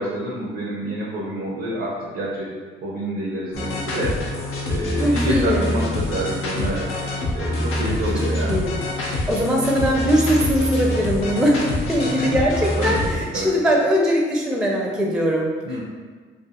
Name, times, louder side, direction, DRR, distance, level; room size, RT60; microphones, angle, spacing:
voice 1, 0.0-2.5 2.8-4.2 4.6-6.9 7.3-8.6 12.0-12.3 12.8-13.6 15.6-15.8, right 1 dB, 80° right, -5 dB, 0.6 m, -27 dB
sound 1, 3.5-13.2, left 1 dB, 90° left, 0.5 m, -26 dB
voice 2, 5.0-5.7 8.5-8.7 9.0-15.5, equal, 5° right, -1 dB, 0.4 m, -21 dB
2.4 x 2.4 x 2.7 m, 1.5 s
cardioid pair, 65°, 21 cm